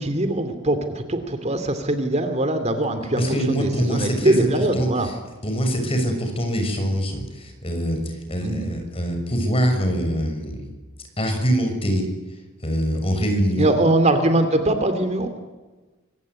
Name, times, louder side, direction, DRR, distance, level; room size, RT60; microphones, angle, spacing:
voice 1, 0.0-5.1 8.4-8.6 13.6-15.3, right 1 dB, 35° right, 8 dB, 2.7 m, -22 dB
voice 2, 3.2-4.5 4.7-5.1 5.4-10.7 11.2-12.1 12.6-13.8, equal, 30° left, 5 dB, 6.6 m, -24 dB
25.5 x 24.0 x 9.7 m, 1.2 s
head